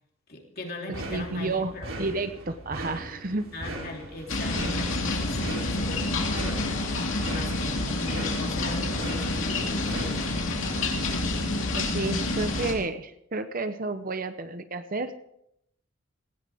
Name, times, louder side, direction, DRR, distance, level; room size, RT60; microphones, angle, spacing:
voice 1, 0.3-2.1 3.5-6.9 7.3-10.3, left 1 dB, 45° left, 0 dB, 3.3 m, -40 dB
sound 1, 0.9-12.2, right 1 dB, 70° right, 3.8 m, -39 dB
voice 2, 1.1-1.7 2.0-3.5 11.7-15.2, right 3 dB, 40° right, 10 dB, 0.8 m, -31 dB
sound 2, 4.3-12.7, left 2 dB, 65° left, 2.8 m, -28 dB
18.5 x 16.5 x 3.6 m, 0.78 s
head